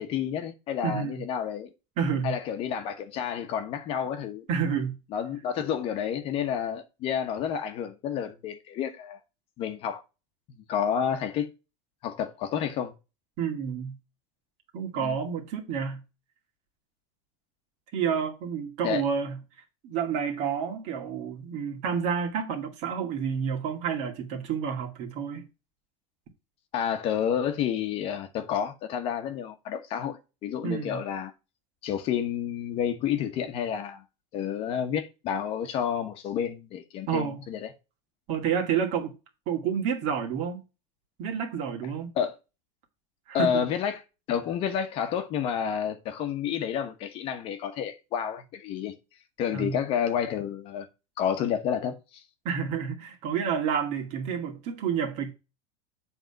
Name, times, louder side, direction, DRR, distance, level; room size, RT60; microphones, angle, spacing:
voice 1, 0.0-1.7 2.2-4.4 5.1-9.2 9.6-10.0 10.7-11.5 12.0-12.9 15.0-15.2 18.8-19.0 26.7-31.3 31.8-34.0 34.3-37.7 42.1-42.3 43.3-44.0 44.3-48.9 49.4-50.9 51.2-52.2, left 8 dB, 40° left, 1.2 m, -30 dB
voice 2, 0.8-1.2 2.0-2.4 4.5-5.0 13.4-14.0 14.7-16.0 17.9-19.4 19.8-25.5 30.6-31.0 37.1-37.5 38.3-39.1 39.5-40.6 41.2-42.1 43.3-43.7 49.5-49.8 52.4-55.3, right 7 dB, 45° right, 2.2 m, -29 dB
7.8 x 3.6 x 5.8 m
supercardioid pair, 160°, 15 cm